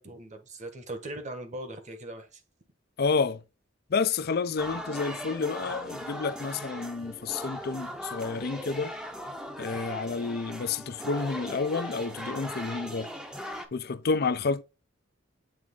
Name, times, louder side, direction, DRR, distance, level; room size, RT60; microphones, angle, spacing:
voice 1, 0.0-2.4, right 1 dB, 40° right, 1.3 m, -40 dB
voice 2, 3.0-3.4 3.9-8.9 9.6-13.1 13.7-14.6, left 4 dB, 55° left, 0.5 m, -30 dB
sound 1, 4.6-13.7, equal, 5° right, 0.8 m, -39 dB
7.8 x 3.5 x 3.7 m
head